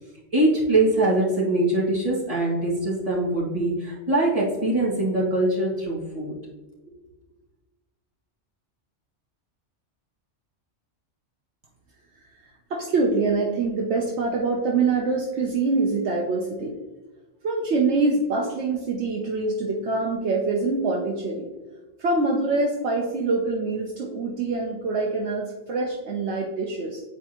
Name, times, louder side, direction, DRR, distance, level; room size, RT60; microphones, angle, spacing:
voice 1, 0.3-6.3, right 2 dB, 30° right, -7 dB, 2.2 m, -23 dB
voice 2, 12.4-16.8 17.4-21.5 22.0-27.0, right 3 dB, 70° right, 0 dB, 1.0 m, -25 dB
8.8 x 4.4 x 2.9 m, 1.2 s
omnidirectional pair, 1.2 m